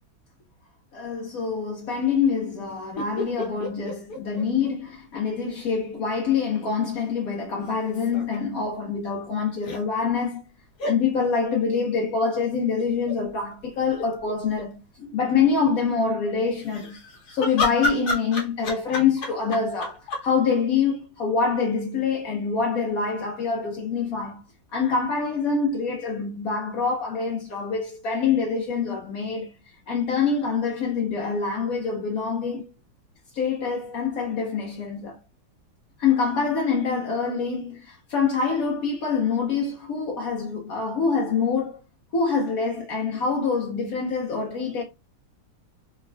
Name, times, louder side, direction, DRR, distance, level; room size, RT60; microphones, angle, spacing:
voice 1, 0.9-10.4 10.8-17.0 17.3-24.4 24.7-29.5 29.9-32.7 33.3-35.2 36.0-41.8 42.1-44.8, left 5 dB, 75° left, 0.8 m, -25 dB
sound 1, 3.0-5.2 5.5-5.6 7.7-8.4 9.6-9.8 10.8-11.0 12.8-13.2 13.7-13.8 13.9-14.7 16.6-20.3, left 2 dB, 60° left, 1.1 m, -31 dB
3.3 x 3.2 x 2.2 m
omnidirectional pair, 2.3 m